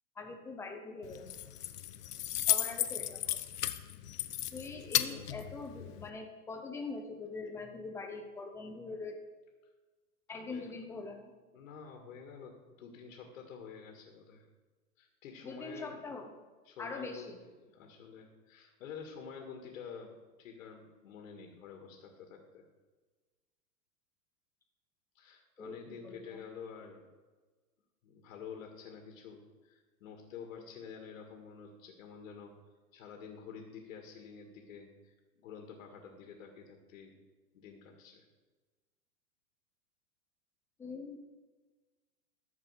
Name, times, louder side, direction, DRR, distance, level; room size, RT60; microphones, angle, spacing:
voice 1, 0.2-1.3 2.5-3.4 4.5-9.2 10.3-11.3 15.4-16.3 16.8-17.4 25.6-26.4 40.8-41.2, left 3 dB, 5° left, 4 dB, 0.6 m, -43 dB
Keys jangling, 1.0-6.1, left 12 dB, 75° left, 0.9 m, -35 dB
voice 2, 5.0-5.5 10.3-10.8 11.5-14.5 15.0-16.0 16.6-17.3 17.6-20.1 20.4-22.7 25.1-27.0 28.0-32.5 32.9-37.2 37.5-38.2, left 6 dB, 55° left, 2 dB, 2.1 m, -49 dB
13.5 x 6.7 x 5.8 m, 1.3 s
hypercardioid pair, 145°, 47 cm